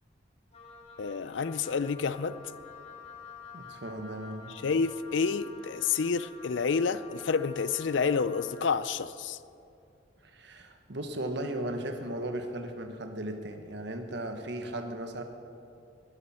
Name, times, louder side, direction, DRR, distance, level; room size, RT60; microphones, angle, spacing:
Wind instrument woodwind instrument, 0.5-8.8, left 5 dB, 35° left, 1.9 m, -49 dB
voice 1, 1.0-2.4 4.6-9.4, left 5 dB, 75° left, 15 dB, 0.5 m, -29 dB
voice 2, 3.5-4.5 10.2-15.2, right 1 dB, 65° right, 6 dB, 1.4 m, -36 dB
20.5 x 12.0 x 4.4 m, 2.6 s
head